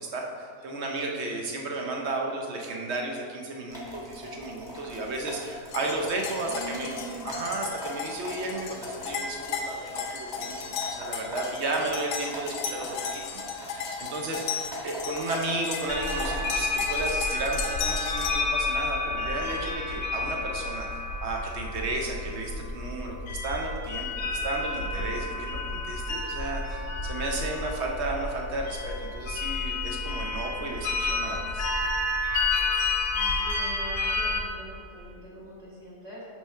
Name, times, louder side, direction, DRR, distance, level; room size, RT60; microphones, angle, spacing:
voice 1, 0.0-6.9 7.2-31.7, right 2 dB, 60° right, 1 dB, 0.7 m, -33 dB
sound 1, 3.7-16.7, left 1 dB, 5° right, 1.1 m, -42 dB
sound 2, 5.7-18.3, left 6 dB, 80° left, 1.2 m, -35 dB
voice 2, 6.4-7.4 33.1-36.2, equal, 25° right, -8 dB, 1.5 m, -43 dB
sound 3, 15.9-34.4, left 2 dB, 50° left, 0.8 m, -30 dB
6.1 x 3.3 x 5.4 m, 2.5 s
omnidirectional pair, 1.7 m